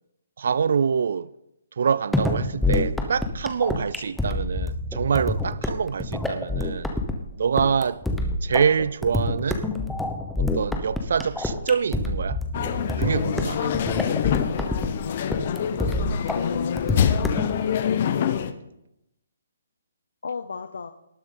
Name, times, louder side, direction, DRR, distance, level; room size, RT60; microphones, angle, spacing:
voice 1, 0.4-1.3 1.8-6.9 7.4-8.0 8.4-9.6 10.4-12.4 13.0-13.7, right 6 dB, 60° right, 0.3 m, -25 dB
sound 1, 2.1-17.6, left 2 dB, ahead, 0.8 m, -27 dB
sound 2, 12.5-18.5, left 8 dB, 40° left, 0.7 m, -26 dB
voice 2, 16.3-17.6 20.2-20.9, left 5 dB, 85° left, 0.7 m, -33 dB
18.5 x 6.8 x 3.8 m
hypercardioid pair, 170°, 0 cm